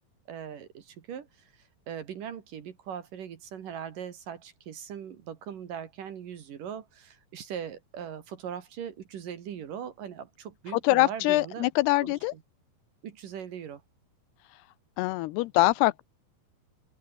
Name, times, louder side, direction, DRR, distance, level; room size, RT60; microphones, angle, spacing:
voice 1, 0.3-1.3 1.9-11.7 12.0-12.4 13.0-13.8, right 8 dB, 60° right, 3.3 m, -40 dB
voice 2, 10.7-12.3 14.5-14.6 15.0-16.0, left 20 dB, 90° left, 2.8 m, -24 dB
open air
omnidirectional pair, 4.6 m